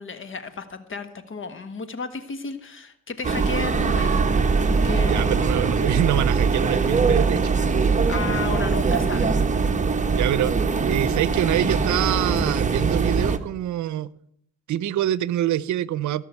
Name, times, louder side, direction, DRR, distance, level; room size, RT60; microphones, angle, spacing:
voice 1, 0.0-4.3 4.8-5.4 8.1-9.3, left 4 dB, 40° left, 10 dB, 1.5 m, -33 dB
sound 1, 3.2-13.4, right 4 dB, 25° right, 1.2 m, -22 dB
voice 2, 5.0-7.5 10.1-14.1 14.7-16.2, right 12 dB, 70° right, 19 dB, 0.7 m, -25 dB
18.0 x 6.1 x 8.2 m, 0.73 s
cardioid pair, 90°, 30 cm